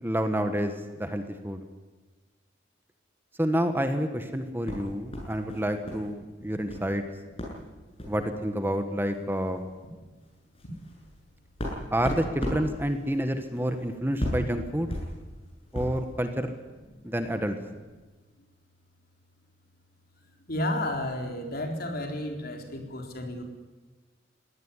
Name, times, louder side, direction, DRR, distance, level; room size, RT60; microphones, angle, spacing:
voice 1, 0.0-1.6 3.4-7.0 8.1-9.6 11.9-15.0 15.7-16.5 17.0-17.6, equal, 10° right, 7 dB, 1.5 m, -29 dB
sound 1, 4.6-6.1 6.3-6.9 7.4-7.6 7.9-8.2 9.1-9.2 9.5-9.7 10.2-16.1, equal, 30° left, 7.6 m, -36 dB
voice 2, 20.5-23.4, left 1 dB, 50° left, 3 dB, 4.1 m, -32 dB
21.5 x 17.5 x 9.9 m, 1.3 s
head